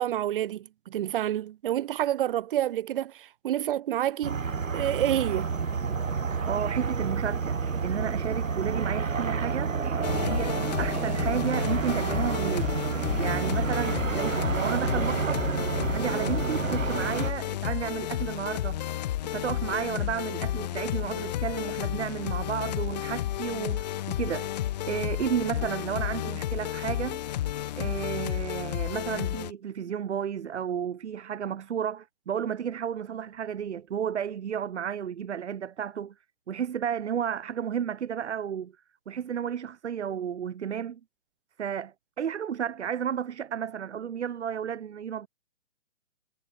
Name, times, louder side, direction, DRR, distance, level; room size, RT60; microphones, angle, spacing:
voice 1, 0.0-4.4 4.7-5.5, right 12 dB, 45° right, 0.8 m, -28 dB
sound 1, 4.2-17.3, right 5 dB, 90° right, 1.8 m, -29 dB
Conversation, 5.3-13.9, right 15 dB, 20° right, 6.7 m, -55 dB
voice 2, 6.4-9.8 10.2-12.8 13.2-15.5 15.9-18.8 19.2-24.5 24.8-27.2 27.7-36.1 36.5-38.7 39.1-41.0 41.6-45.3, right 8 dB, 60° right, 4.1 m, -32 dB
sound 2, 10.0-29.5, left 13 dB, 35° left, 0.6 m, -32 dB
hypercardioid pair, 135°, 38 cm